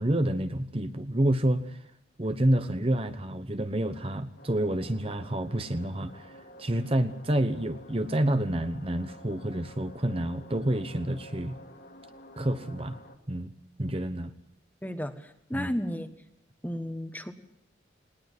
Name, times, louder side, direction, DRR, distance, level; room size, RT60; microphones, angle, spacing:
voice 1, 0.0-1.8 2.2-11.6 12.4-13.0 13.3-13.5 13.8-14.3 15.5-15.7, right 1 dB, 30° right, 9 dB, 1.0 m, -28 dB
sound 1, 4.4-13.2, left 1 dB, 55° left, 2.4 m, -51 dB
voice 2, 14.8-16.1 16.6-17.3, equal, 10° left, 9 dB, 1.3 m, -33 dB
20.0 x 19.5 x 8.1 m, 0.75 s
head